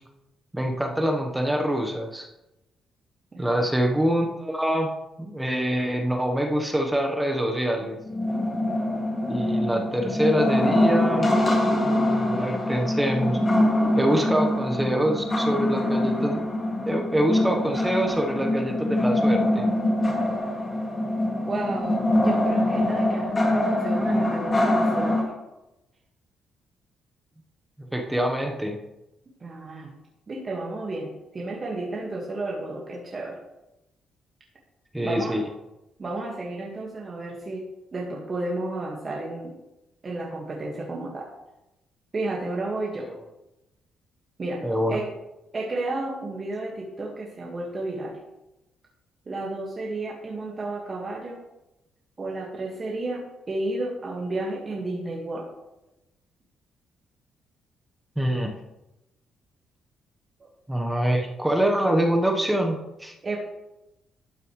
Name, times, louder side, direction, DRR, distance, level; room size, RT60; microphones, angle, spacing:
voice 1, 0.5-2.3 3.4-4.9 5.2-8.0 9.3-11.3 11.8-13.4 14.0-16.4 16.9-19.7 27.9-28.8 34.9-35.4 44.6-45.0 58.2-58.5 60.7-63.1, right 1 dB, 10° right, 2 dB, 1.0 m, -25 dB
sound 1, 8.1-25.2, left 1 dB, 30° left, 2.2 m, -24 dB
voice 2, 21.4-25.3 29.4-29.9 30.3-33.4 35.0-35.4 36.0-39.5 40.0-41.3 42.1-43.1 44.4-44.6 44.9-45.1 45.5-48.2 49.2-51.4 52.2-55.5 60.4-60.5 63.2-63.4, right 2 dB, 35° right, -2 dB, 1.6 m, -32 dB
12.0 x 6.7 x 3.2 m, 0.95 s
cardioid pair, 90°, 0 cm